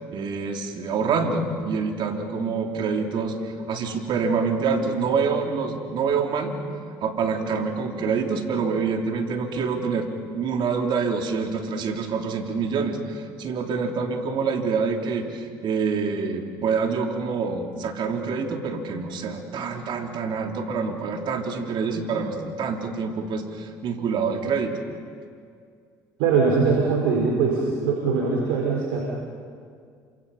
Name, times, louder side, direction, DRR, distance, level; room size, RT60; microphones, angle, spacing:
voice 1, 0.1-6.6 7.0-10.1 10.3-24.8, right 5 dB, 60° right, 3 dB, 3.4 m, -26 dB
voice 2, 26.2-29.0, right 5 dB, 80° right, -2 dB, 4.8 m, -22 dB
28.5 x 26.0 x 5.6 m, 2.2 s
supercardioid pair, 75°, 9 cm